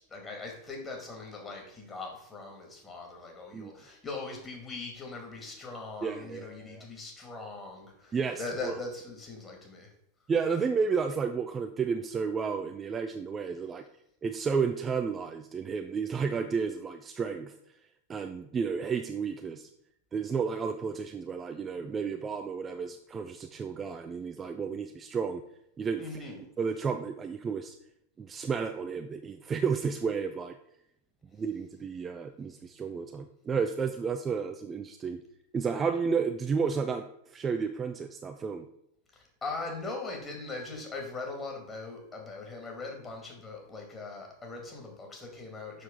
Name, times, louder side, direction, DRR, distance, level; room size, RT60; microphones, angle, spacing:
voice 1, 0.0-9.9 26.0-26.4 39.1-45.8, left 3 dB, 15° left, 1 dB, 2.2 m, -40 dB
voice 2, 6.0-6.8 8.1-8.7 10.3-13.8 14.2-17.6 18.1-19.7 20.1-25.4 25.8-26.2 26.6-27.8 28.2-30.6 31.3-35.2 35.5-38.7, right 5 dB, 20° right, 6 dB, 0.4 m, -32 dB
6.7 x 6.0 x 3.8 m, 0.77 s
figure-of-eight pair, 90°, 0 cm